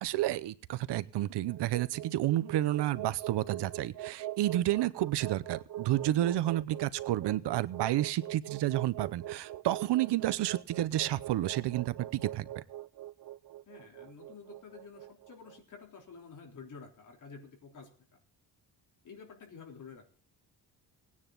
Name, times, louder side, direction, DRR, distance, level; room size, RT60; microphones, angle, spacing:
voice 1, 0.0-12.6, right 14 dB, 80° right, 16 dB, 0.8 m, -30 dB
sound 1, 1.5-15.6, right 14 dB, 55° right, 0.6 m, -42 dB
voice 2, 13.7-17.9 19.0-20.1, left 5 dB, 50° left, 1 dB, 3.7 m, -50 dB
19.0 x 9.7 x 3.9 m, 0.42 s
cardioid pair, 170°, 41 cm